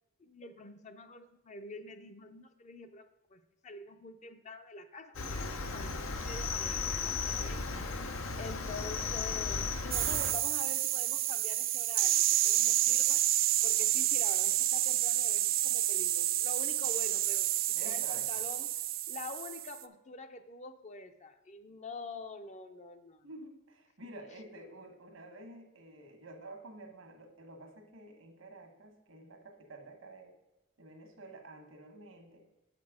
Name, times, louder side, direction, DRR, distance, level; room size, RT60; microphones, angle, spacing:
voice 1, 0.2-7.6 8.4-13.2 13.6-18.7 19.1-23.3, left 3 dB, 35° left, 8 dB, 0.5 m, -46 dB
Cricket, 5.1-10.3, left 4 dB, 90° left, 0.8 m, -35 dB
sound 1, 9.9-19.8, right 14 dB, 45° right, 0.3 m, -29 dB
voice 2, 17.7-18.4 23.2-30.3 30.8-32.4, right 2 dB, 85° right, 5 dB, 1.4 m, -50 dB
7.8 x 5.9 x 5.0 m, 0.96 s
head